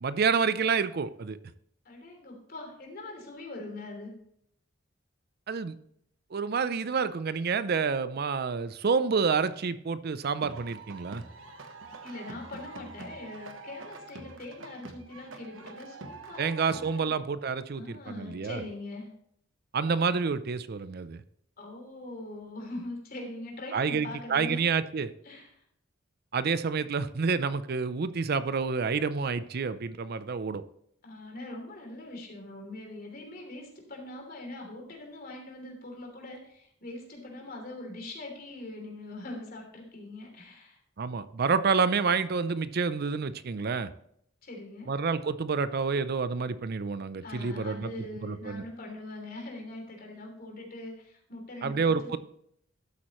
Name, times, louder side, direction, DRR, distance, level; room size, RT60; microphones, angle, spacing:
voice 1, 0.0-1.4 5.5-5.7 6.3-11.2 16.4-18.6 19.7-21.2 23.7-25.1 26.3-30.6 41.0-43.9 44.9-47.9 48.2-48.6 51.6-52.2, right 5 dB, 55° right, 14 dB, 0.5 m, -28 dB
voice 2, 1.8-4.1 12.0-17.1 17.7-19.1 21.6-24.6 25.2-25.6 31.0-40.8 44.4-44.9 47.2-52.2, left 2 dB, 50° left, 1 dB, 3.1 m, -42 dB
sound 1, 10.2-17.0, right 3 dB, 90° right, 1.1 m, -45 dB
12.5 x 8.5 x 3.1 m, 0.71 s
head